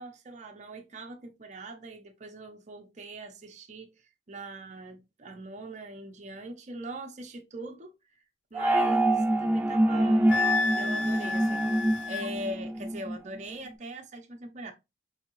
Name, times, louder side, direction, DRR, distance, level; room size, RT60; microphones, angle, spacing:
voice 1, 0.0-3.9 4.3-7.9 8.5-10.3 10.8-14.7, right 1 dB, 40° right, 0.7 m, -41 dB
sound 1, 8.5-13.2, right 1 dB, 10° right, 0.3 m, -26 dB
Wind instrument woodwind instrument, 10.3-12.3, left 4 dB, 75° left, 0.4 m, -30 dB
4.7 x 2.7 x 2.9 m
head